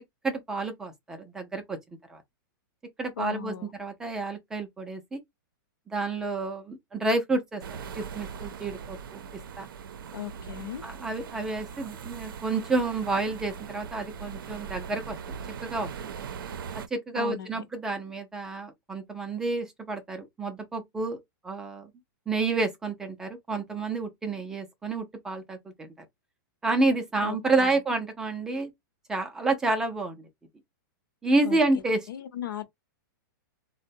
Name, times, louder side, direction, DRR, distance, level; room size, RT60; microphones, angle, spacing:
voice 1, 0.2-1.8 2.1-2.2 3.0-3.5 3.8-5.2 5.9-7.6 8.0-9.2 9.6-9.7 10.8-15.4 15.6-16.1 16.7-21.9 22.3-25.9 26.6-28.7 29.1-30.2 31.2-32.0, right 3 dB, 5° right, 0.4 m, -29 dB
voice 2, 3.2-3.7 10.1-10.8 17.1-17.6 27.2-27.8 31.4-31.6 32.1-32.6, left 12 dB, 70° left, 0.8 m, -37 dB
sound 1, 7.6-16.9, right 6 dB, 85° right, 0.5 m, -40 dB
3.7 x 2.1 x 2.6 m
supercardioid pair, 175°, 11 cm